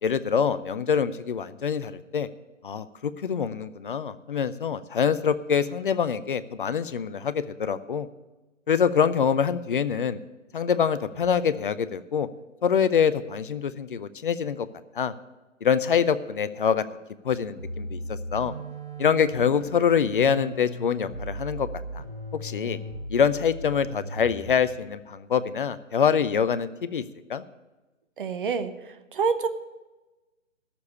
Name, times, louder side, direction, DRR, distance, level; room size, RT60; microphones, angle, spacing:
voice 1, 0.0-2.3 2.6-8.1 8.7-10.2 10.5-12.3 12.6-14.7 15.0-15.1 15.6-16.8 17.2-18.5 19.0-21.7 22.4-22.8 23.1-27.0 27.3-27.4, left 7 dB, 45° left, 14 dB, 0.6 m, -25 dB
sound 1, 17.6-24.7, right 1 dB, 20° right, 4.0 m, -37 dB
voice 2, 28.2-29.5, right 5 dB, 45° right, 9 dB, 1.0 m, -27 dB
12.5 x 7.0 x 8.4 m, 1.1 s
figure-of-eight pair, 140°, 37 cm